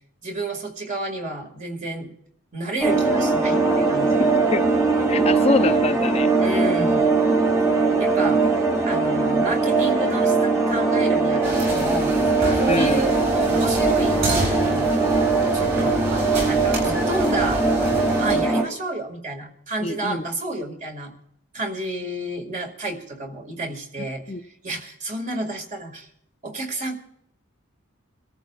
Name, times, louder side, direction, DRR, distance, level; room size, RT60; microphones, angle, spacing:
voice 1, 0.2-2.1 2.5-4.3 6.4-7.1 8.0-8.5 8.9-12.1 12.5-14.9 15.5-17.7 18.2-21.1 21.5-24.2 24.6-26.1 26.4-27.0, right 2 dB, 35° right, 2.1 m, -30 dB
sound 1, 2.8-18.6, right 3 dB, 15° right, 2.0 m, -20 dB
voice 2, 5.1-6.6 12.7-13.1 19.8-20.2 24.3-24.4, left 3 dB, 30° left, 0.6 m, -25 dB
sound 2, 11.4-18.4, right 1 dB, 55° right, 7.0 m, -29 dB
26.0 x 14.0 x 2.4 m
head